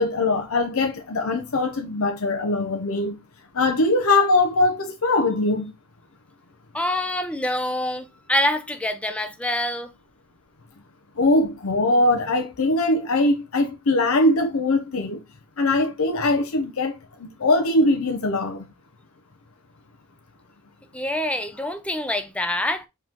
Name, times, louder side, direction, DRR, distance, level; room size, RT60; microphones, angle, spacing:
voice 1, 0.0-3.2 3.5-5.7 11.2-15.2 15.6-16.9 17.2-18.7, left 2 dB, 70° left, 0.7 m, -21 dB
voice 2, 6.7-9.9 20.9-22.9, left 1 dB, 5° left, 0.5 m, -26 dB
4.6 x 3.1 x 3.6 m
head